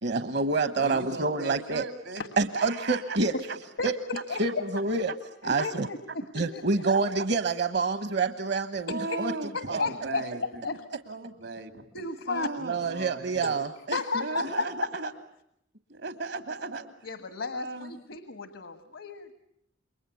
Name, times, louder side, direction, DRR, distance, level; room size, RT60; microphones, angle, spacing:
voice 1, 0.0-1.9 2.4-3.3 3.8-3.9 4.3-5.1 5.4-5.9 6.3-9.8 12.6-14.5, right 3 dB, 65° right, 9 dB, 1.0 m, -28 dB
voice 2, 0.8-2.2 2.5-3.2 5.6-5.7 6.8-7.0 8.9-10.6 11.1-11.9 12.3-13.6 14.2-15.1 15.9-16.8 17.5-17.9, right 3 dB, 85° right, 8 dB, 2.7 m, -36 dB
voice 3, 3.8-4.4 5.4-6.0 6.3-6.6 8.9-9.2 9.5-10.2 10.6-10.8 11.9-12.5 13.9-14.6 17.0-19.3, left 4 dB, 85° left, 9 dB, 1.5 m, -33 dB
28.5 x 23.0 x 8.3 m, 0.75 s
head